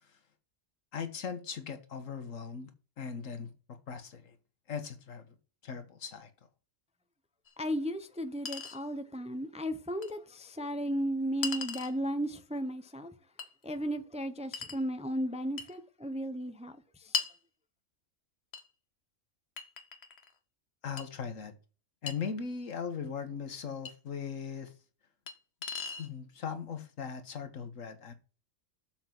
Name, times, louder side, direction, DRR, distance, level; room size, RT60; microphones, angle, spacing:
voice 1, 0.9-2.7 3.0-4.3 4.7-5.3 5.6-6.3 20.8-21.5 22.0-24.7 26.0-28.1, left 6 dB, 75° left, 1.7 m, -39 dB
Chink clink, 7.5-7.6 8.5-8.8 10.0-10.1 11.4-12.0 13.4-13.5 14.5-14.8 15.6-15.8 17.1-17.4 18.5-18.7 19.6-20.3 21.0-21.1 22.1-22.2 23.9-24.0 25.3-25.4 25.6-26.1, left 6 dB, 55° left, 1.4 m, -37 dB
voice 2, 7.6-13.1 13.6-17.1, equal, 5° right, 0.7 m, -35 dB
7.4 x 5.9 x 6.0 m
omnidirectional pair, 1.4 m